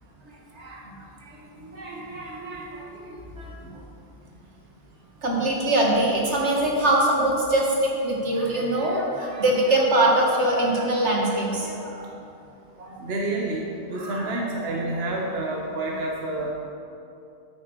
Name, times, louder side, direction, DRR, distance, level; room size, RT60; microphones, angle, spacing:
voice 1, 0.3-3.7 5.2-12.1 12.8-13.0 13.9-14.3, right 1 dB, 90° right, -2 dB, 2.2 m, -24 dB
voice 2, 13.0-16.5, right 2 dB, 65° right, -1 dB, 1.3 m, -28 dB
9.2 x 8.6 x 6.5 m, 2.7 s
omnidirectional pair, 1.1 m